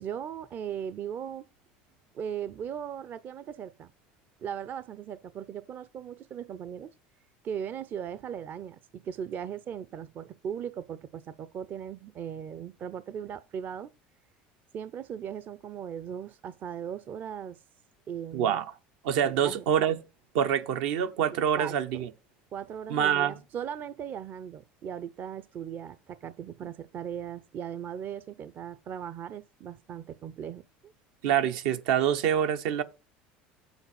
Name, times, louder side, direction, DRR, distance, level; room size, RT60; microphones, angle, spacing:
voice 1, 0.0-1.4 2.1-3.9 4.4-6.9 7.4-13.9 14.7-17.6 18.1-18.6 19.2-19.6 21.6-21.7 22.5-30.9, right 8 dB, 45° right, 0.5 m, -38 dB
voice 2, 18.3-18.7 19.0-20.0 20.3-22.1 22.9-23.3 31.2-32.8, right 9 dB, 75° right, 0.8 m, -26 dB
7.1 x 5.2 x 5.8 m
supercardioid pair, 95°, 5 cm